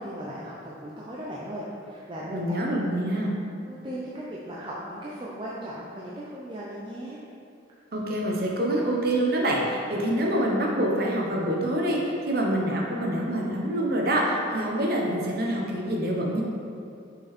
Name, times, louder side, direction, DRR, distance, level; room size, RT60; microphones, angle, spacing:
voice 1, 0.0-2.6 3.7-7.2, equal, 25° right, -7 dB, 0.6 m, -37 dB
voice 2, 2.3-3.4 7.9-16.4, right 1 dB, 50° right, -2 dB, 1.0 m, -26 dB
5.9 x 5.5 x 4.3 m, 2.5 s
head